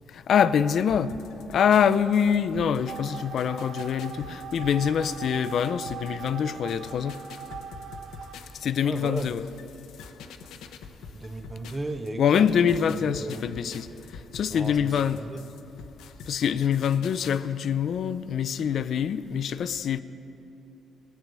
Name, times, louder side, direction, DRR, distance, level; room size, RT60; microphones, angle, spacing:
voice 1, 0.1-1.2 1.5-7.2 8.5-9.4 12.2-15.2 16.3-20.0, left 8 dB, 65° left, 0.5 m, -25 dB
sound 1, 0.9-12.1 12.5-17.4, left 5 dB, 85° left, 0.8 m, -46 dB
sound 2, 2.9-8.3, right 7 dB, 65° right, 0.9 m, -40 dB
voice 2, 8.8-9.4 11.1-13.4 14.5-15.4, right 2 dB, 25° right, 0.8 m, -36 dB
17.0 x 8.7 x 7.5 m
cardioid pair, 90°, 0 cm